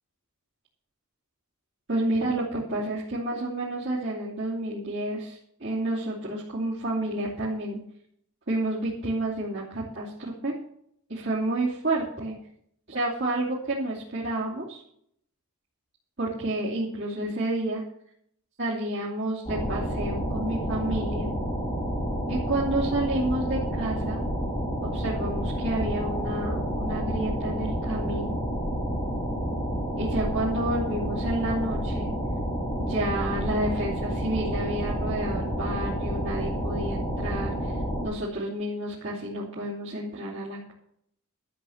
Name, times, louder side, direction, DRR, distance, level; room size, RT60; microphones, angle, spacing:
voice 1, 1.9-7.8 8.5-10.5 11.1-12.3 12.9-14.8 16.2-17.8 18.6-21.3 22.3-24.2 24.9-28.4 30.0-32.1 32.8-37.7 38.0-40.7, right 1 dB, 55° right, -8 dB, 2.9 m, -30 dB
sound 1, 19.5-38.0, equal, 20° left, 4.9 m, -29 dB
12.5 x 7.5 x 7.3 m, 0.69 s
head